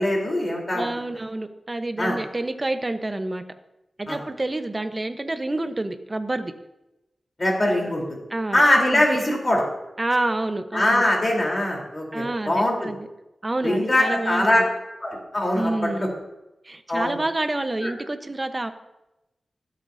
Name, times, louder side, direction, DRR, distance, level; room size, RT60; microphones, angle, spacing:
voice 1, 0.0-0.9 2.0-2.2 4.1-4.2 7.4-8.0 8.5-9.6 10.7-12.9 13.6-14.6 15.0-16.1 16.9-17.2 17.8-17.9, left 1 dB, 35° left, -1 dB, 3.8 m, -22 dB
voice 2, 0.7-3.4 4.0-6.5 7.8-7.9 8.3-8.6 8.9-9.0 10.0-11.0 12.1-13.1 13.4-14.7 15.5-16.1 16.6-18.7, right 2 dB, 30° right, 8 dB, 1.0 m, -28 dB
24.5 x 8.5 x 2.8 m, 0.94 s
wide cardioid pair, 75°, 0 cm